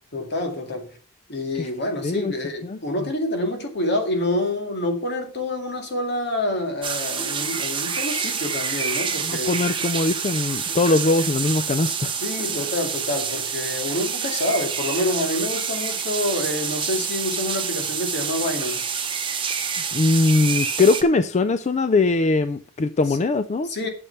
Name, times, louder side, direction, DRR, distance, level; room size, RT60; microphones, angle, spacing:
voice 1, 0.1-1.0 1.3-9.6 12.2-18.9 23.6-23.9, left 1 dB, 50° left, 2.1 m, -27 dB
sound 1, 6.8-21.0, right 6 dB, 25° right, 1.2 m, -27 dB
voice 2, 9.2-12.2 19.9-23.7, left 3 dB, 30° left, 0.4 m, -21 dB
8.5 x 7.0 x 5.8 m
head